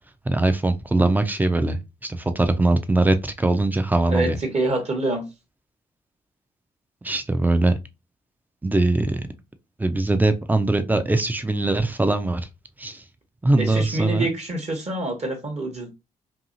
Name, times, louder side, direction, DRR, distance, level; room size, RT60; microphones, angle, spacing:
voice 1, 0.3-4.4 7.0-7.8 8.6-9.2 9.8-12.5 12.8-13.0 13.4-14.3, right 2 dB, 10° right, 0.5 m, -21 dB
voice 2, 4.1-5.3 13.6-15.9, right 2 dB, 40° right, 1.0 m, -26 dB
2.7 x 2.6 x 2.6 m
figure-of-eight pair, 40°, 18 cm